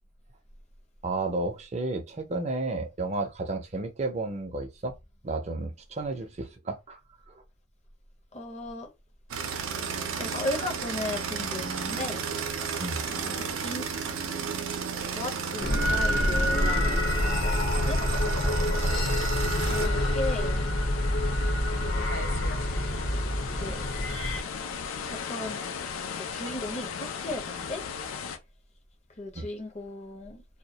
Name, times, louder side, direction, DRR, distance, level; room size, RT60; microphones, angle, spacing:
voice 1, 1.0-4.9 5.2-7.0 7.3-7.4 12.8-13.0 18.4-19.0 29.3-29.5, right 2 dB, 35° right, 0.4 m, -32 dB
voice 2, 8.3-8.9 10.2-12.2 13.1-13.9 15.1-18.0 19.6-20.7 21.7-22.4 23.4-23.9 25.1-25.6 26.1-27.8 29.2-30.4, left 2 dB, 35° left, 0.6 m, -36 dB
sound 1, 9.3-19.9, right 6 dB, 85° right, 0.5 m, -33 dB
sound 2, 15.6-24.4, left 1 dB, 70° left, 0.8 m, -26 dB
sound 3, 19.6-28.4, left 5 dB, 90° left, 0.4 m, -37 dB
2.2 x 2.0 x 2.7 m
head